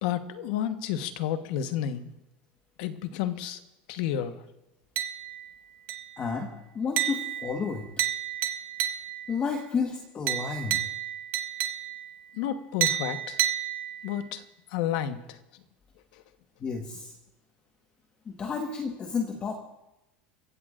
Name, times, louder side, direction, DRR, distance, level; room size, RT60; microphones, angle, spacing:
voice 1, 0.0-2.1 2.8-3.6 3.9-4.4 12.3-13.4 14.0-14.4 14.7-15.4, left 10 dB, 70° left, 9 dB, 1.2 m, -31 dB
sound 1, 5.0-5.5 5.9-6.3 7.0-9.4 10.3-12.2 12.8-14.2, right 12 dB, 45° right, 1.1 m, -31 dB
voice 2, 6.2-7.9 9.3-10.8 16.6-17.1 18.3-19.5, left 5 dB, 25° left, 1 dB, 1.4 m, -31 dB
30.0 x 15.5 x 2.5 m, 0.94 s
supercardioid pair, 150°, 5 cm